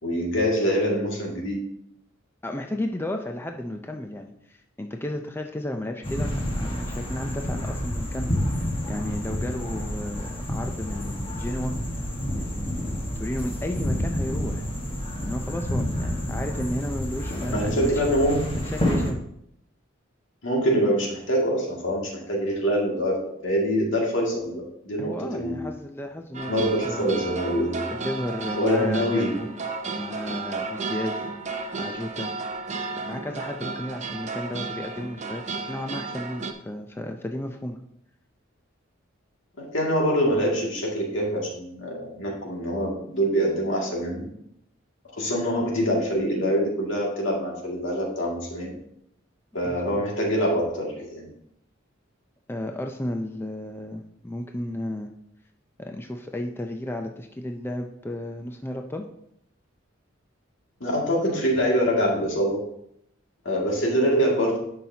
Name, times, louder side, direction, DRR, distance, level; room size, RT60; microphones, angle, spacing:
voice 1, 0.0-1.6 16.2-16.3 17.5-18.6 20.4-23.2 23.4-25.7 26.5-27.8 28.6-29.4 39.6-44.2 45.2-48.7 49.5-51.3 60.8-62.6 63.4-64.6, equal, 70° left, -2 dB, 2.3 m, -25 dB
voice 2, 2.4-11.7 12.3-14.7 15.2-18.0 18.5-19.2 25.0-27.1 27.9-29.5 30.0-32.3 33.0-35.4 35.7-37.8 49.6-49.8 52.5-55.1 55.8-59.1, left 1 dB, 10° left, 4 dB, 0.4 m, -33 dB
sound 1, 6.0-19.1, left 1 dB, 30° left, 1.4 m, -29 dB
sound 2, 26.3-36.5, right 3 dB, 35° right, 0.6 m, -33 dB
11.5 x 5.7 x 2.8 m, 0.74 s
head